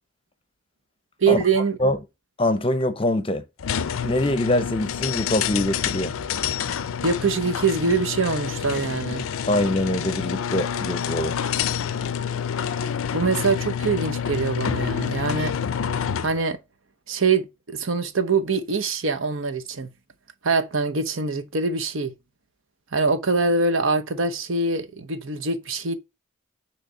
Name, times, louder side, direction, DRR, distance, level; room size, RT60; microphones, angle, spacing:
voice 1, 1.2-1.8 7.0-9.3 13.1-15.5 16.2-16.6 17.1-19.9 20.4-22.1 22.9-25.9, right 4 dB, 70° right, 0.9 m, -24 dB
voice 2, 2.4-3.4 4.0-6.1 9.5-11.5, left 1 dB, 25° left, 0.7 m, -24 dB
sound 1, 3.6-16.4, left 8 dB, 80° left, 0.4 m, -28 dB
6.4 x 3.3 x 5.3 m
head